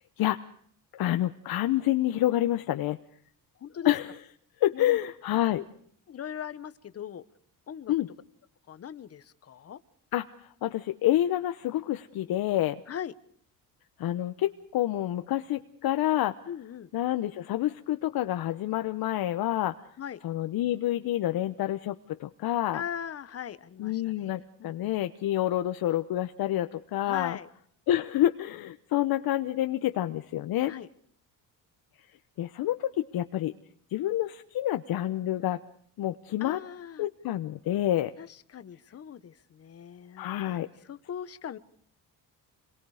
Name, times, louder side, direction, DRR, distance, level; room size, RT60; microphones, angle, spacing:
voice 1, 0.9-3.0 3.8-4.1 4.6-5.6 7.9-8.1 10.1-10.3 10.6-12.8 14.0-16.3 16.9-19.8 20.2-22.8 23.8-27.4 27.9-30.7 32.4-33.5 33.9-35.6 36.0-36.6 37.0-38.1 40.2-40.7, left 13 dB, 65° left, 9 dB, 1.0 m, -28 dB
voice 2, 3.6-3.9 4.7-5.0 5.5-5.6 6.1-7.2 7.7-7.9 8.7-9.8 12.9-13.1 16.5-16.9 20.0-20.2 22.7-24.3 24.6-25.0 27.0-27.5 30.7-30.9 36.4-37.1 38.2-41.6, left 9 dB, 40° left, 13 dB, 1.2 m, -40 dB
27.5 x 22.5 x 5.0 m, 0.62 s
cardioid pair, 155°, 39 cm